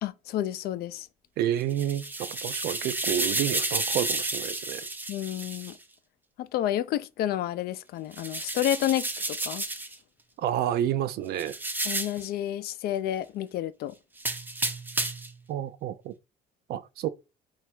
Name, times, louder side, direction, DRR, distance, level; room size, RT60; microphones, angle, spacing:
voice 1, 0.0-1.1 5.1-5.8 6.4-9.6 11.8-13.9, left 12 dB, 65° left, 0.4 m, -30 dB
voice 2, 1.4-4.8 10.4-11.6 15.5-16.1 16.7-17.1, right 11 dB, 70° right, 0.4 m, -29 dB
sound 1, 1.6-5.7 8.1-10.0 11.4-12.3 14.2-15.4, right 2 dB, 10° right, 0.5 m, -31 dB
3.3 x 2.4 x 4.4 m
cardioid pair, 110°, 17 cm